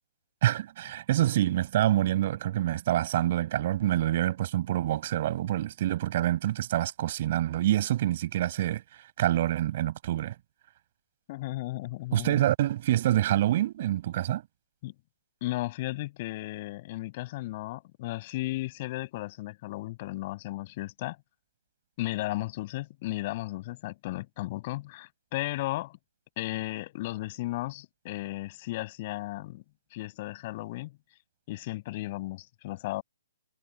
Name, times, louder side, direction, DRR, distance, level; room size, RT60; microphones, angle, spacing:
voice 1, 0.4-10.3 12.1-14.4, right 13 dB, 45° right, 6.8 m, -26 dB
voice 2, 11.3-12.4 14.8-14.9 15.4-21.2 22.0-26.0 26.4-29.6 29.9-30.9 31.5-33.0, left 18 dB, 40° left, 7.7 m, -35 dB
hypercardioid pair, 140°, 0 cm